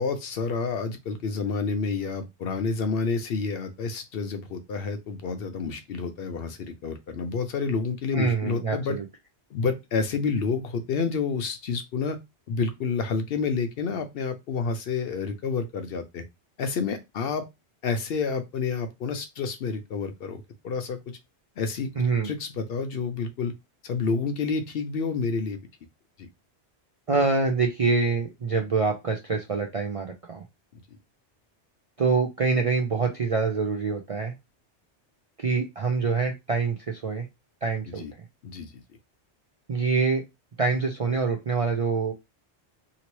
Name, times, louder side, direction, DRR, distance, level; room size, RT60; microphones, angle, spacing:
voice 1, 0.0-9.0 9.5-12.2 12.5-16.2 16.6-17.4 17.8-21.2 21.6-23.5 23.8-25.6 26.2-26.3 37.9-38.1 38.4-38.7, left 5 dB, 65° left, 0.7 m, -29 dB
voice 2, 8.1-9.0 22.0-22.3 27.1-30.4 32.0-34.3 35.4-37.2 37.6-38.0 39.7-40.2 40.6-42.1, right 4 dB, 50° right, 0.4 m, -25 dB
2.8 x 2.7 x 3.0 m
omnidirectional pair, 1.2 m